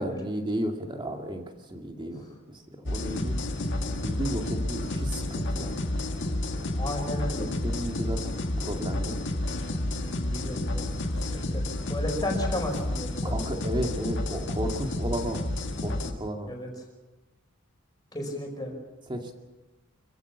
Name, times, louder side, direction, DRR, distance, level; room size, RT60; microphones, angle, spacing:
voice 1, 0.0-1.4 1.7-2.2 2.8-3.4 4.0-5.7 7.4-8.4 8.6-9.2 13.2-15.4 15.8-16.5 19.1-19.4, right 1 dB, 25° right, 3 dB, 2.3 m, -33 dB
sound 1, 2.9-16.1, left 1 dB, 60° left, 1.8 m, -30 dB
voice 2, 6.8-7.5 10.3-10.9 11.3-11.6 11.9-13.4 16.4-16.7 18.1-18.7, left 1 dB, 20° left, 1 dB, 5.0 m, -33 dB
26.0 x 15.0 x 7.1 m, 1.1 s
head